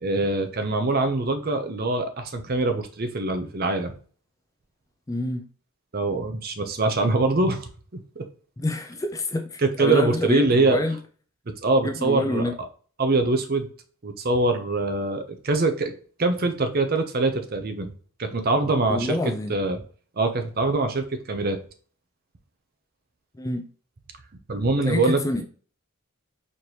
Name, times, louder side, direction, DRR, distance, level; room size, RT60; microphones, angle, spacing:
voice 1, 0.0-3.9 5.9-7.7 8.2-8.3 9.6-10.8 11.6-12.4 13.0-13.7 14.0-15.9 16.2-17.9 18.2-19.2 19.5-19.8 20.2-21.6 24.5-25.2, right 2 dB, 40° right, 0.6 m, -23 dB
voice 2, 5.1-5.4 8.6-11.0 11.8-12.5 18.9-19.6 23.4-23.7 24.8-25.4, left 1 dB, 15° left, 0.3 m, -27 dB
4.3 x 2.9 x 3.1 m
head